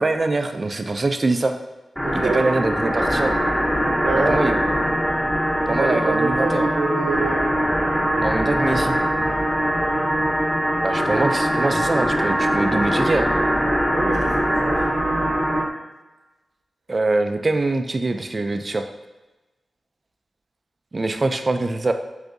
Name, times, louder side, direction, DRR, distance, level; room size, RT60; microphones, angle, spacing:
voice 1, 0.0-1.5 2.1-3.4 4.1-4.6 5.7-6.7 8.2-9.0 10.8-13.3 16.9-18.8 20.9-21.9, right 2 dB, 35° right, 7 dB, 0.3 m, -23 dB
sound 1, 2.0-15.7, equal, 10° left, 0.7 m, -22 dB
voice 2, 2.0-2.5 2.8-3.1 4.0-4.5 5.6-7.6 8.4-8.8 13.9-14.8, right 3 dB, 75° right, 0 dB, 0.8 m, -26 dB
7.9 x 2.6 x 2.6 m, 1.1 s
wide cardioid pair, 110°, 0 cm